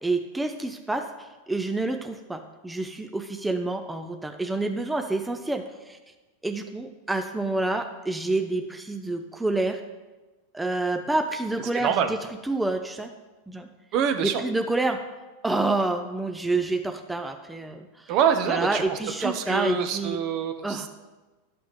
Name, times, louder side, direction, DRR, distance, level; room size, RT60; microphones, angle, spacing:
voice 1, 0.0-6.0 6.4-9.8 10.5-12.2 12.4-13.1 13.5-13.7 14.2-15.0 15.4-18.1 18.5-20.2 20.6-20.9, right 2 dB, 5° right, 5 dB, 0.5 m, -28 dB
voice 2, 11.7-12.1 13.9-14.4 18.1-20.9, right 8 dB, 50° right, 7 dB, 0.8 m, -25 dB
11.5 x 6.0 x 3.2 m, 1.2 s
hypercardioid pair, 115°, 0 cm